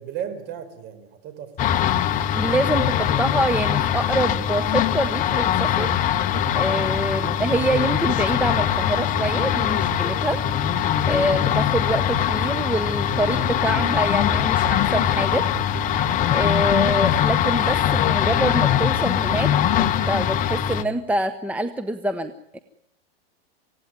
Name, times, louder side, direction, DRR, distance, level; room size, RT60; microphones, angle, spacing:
voice 1, 0.0-1.8, right 9 dB, 35° right, 10 dB, 5.1 m, -35 dB
sound 1, 1.6-20.8, left 9 dB, 25° left, 1.2 m, -22 dB
voice 2, 2.3-5.9 6.5-10.4 11.1-15.4 16.3-22.6, right 1 dB, 5° right, 8 dB, 0.9 m, -26 dB
27.0 x 17.0 x 9.5 m, 0.80 s
supercardioid pair, 145°, 30 cm